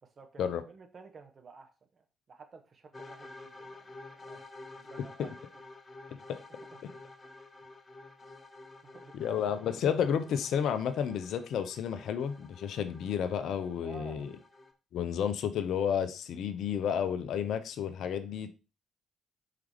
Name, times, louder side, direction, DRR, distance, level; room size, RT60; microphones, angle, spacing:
voice 1, 0.0-4.5 4.7-5.4 6.7-6.8 8.2-8.3 8.9-9.1 13.8-14.3, right 4 dB, 45° right, 1.4 m, -52 dB
sound 1, 2.9-14.7, left 2 dB, 30° left, 1.3 m, -51 dB
voice 2, 9.1-14.3 14.9-18.5, left 8 dB, 65° left, 0.6 m, -31 dB
4.9 x 4.8 x 4.6 m
hypercardioid pair, 45°, 0 cm